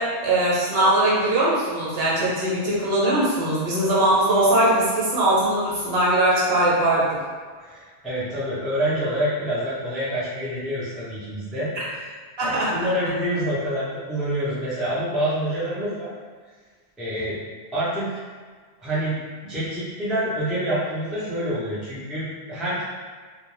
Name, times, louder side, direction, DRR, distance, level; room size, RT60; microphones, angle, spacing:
voice 1, 0.0-7.0 11.7-11.8 12.4-12.7, right 1 dB, 65° right, -7 dB, 1.0 m, -20 dB
voice 2, 7.6-11.7 12.0-12.1 12.4-16.1 17.0-17.4 17.7-18.1 18.8-19.2 19.4-22.8, equal, ahead, -10 dB, 0.5 m, -27 dB
2.4 x 2.1 x 3.1 m, 1.6 s
omnidirectional pair, 1.1 m